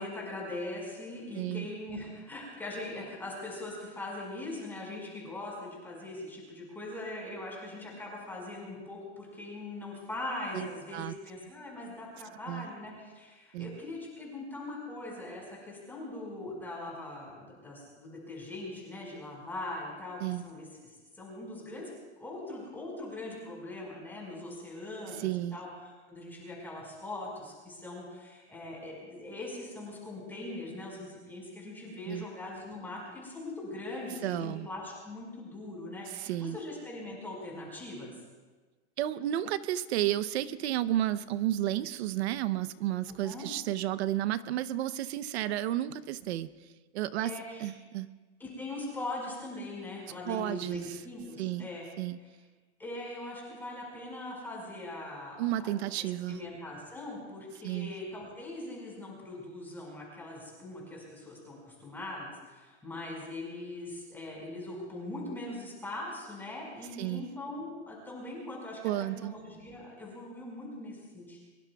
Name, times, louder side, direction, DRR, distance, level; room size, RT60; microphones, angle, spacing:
voice 1, 0.0-38.1 43.0-43.5 47.1-47.7 48.4-51.8 52.8-71.4, left 2 dB, 5° left, -4 dB, 5.0 m, -41 dB
voice 2, 1.3-1.7 10.5-11.1 12.5-12.7 13.5-13.8 20.2-20.4 25.2-25.6 32.1-32.3 34.2-34.7 36.1-36.6 39.0-46.5 46.9-47.3 47.6-48.1 50.3-50.8 51.4-51.7 52.0-52.2 55.4-56.4 57.6-57.9 67.0-67.3 68.8-69.3, right 13 dB, 65° right, 15 dB, 0.8 m, -32 dB
23.5 x 23.0 x 2.3 m, 1.3 s
supercardioid pair, 165°, 34 cm